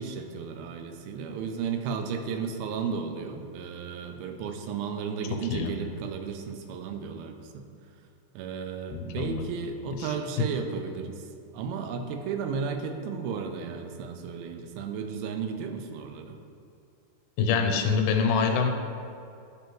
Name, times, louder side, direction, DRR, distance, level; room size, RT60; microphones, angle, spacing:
voice 1, 0.0-7.7 8.4-11.3 11.5-16.4, right 6 dB, 90° right, 6 dB, 2.4 m, -34 dB
voice 2, 8.9-9.5 10.0-10.1 10.4-10.5 17.4-18.7, left 5 dB, 90° left, 4 dB, 2.4 m, -25 dB
9.8 x 3.4 x 3.0 m, 2.5 s
omnidirectional pair, 4.2 m